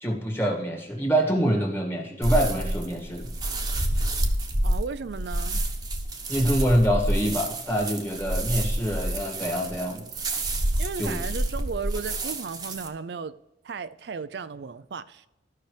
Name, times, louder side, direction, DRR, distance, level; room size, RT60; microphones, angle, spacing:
voice 1, 0.0-3.3 6.3-10.1 11.0-11.2, equal, 15° left, 2.0 m, -25 dB
sound 1, 2.2-12.9, right 1 dB, 20° right, 1.1 m, -28 dB
voice 2, 4.6-5.6 10.8-13.3 13.6-15.3, right 5 dB, 65° right, 0.4 m, -35 dB
14.5 x 5.8 x 3.3 m
head